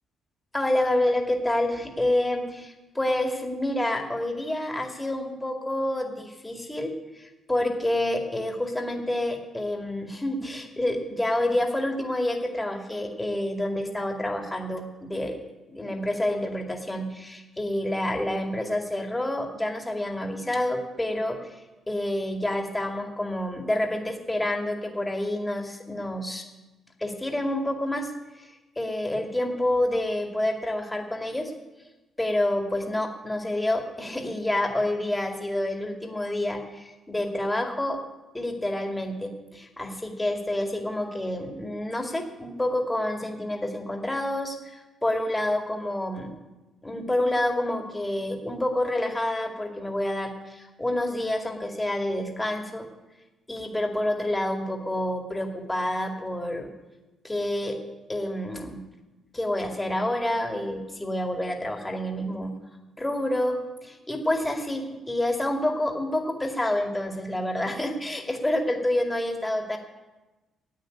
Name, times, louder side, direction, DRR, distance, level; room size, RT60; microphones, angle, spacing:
voice 1, 0.5-15.4 15.7-21.6 21.9-26.4 27.0-28.1 28.3-31.5 32.2-38.0 38.3-46.3 46.8-52.9 53.5-56.7 57.2-57.8 58.1-58.8 59.3-62.5 63.0-69.8, left 1 dB, 10° left, 3 dB, 2.3 m, -28 dB
10.5 x 8.3 x 9.2 m, 1.1 s
cardioid pair, 90°, 0 cm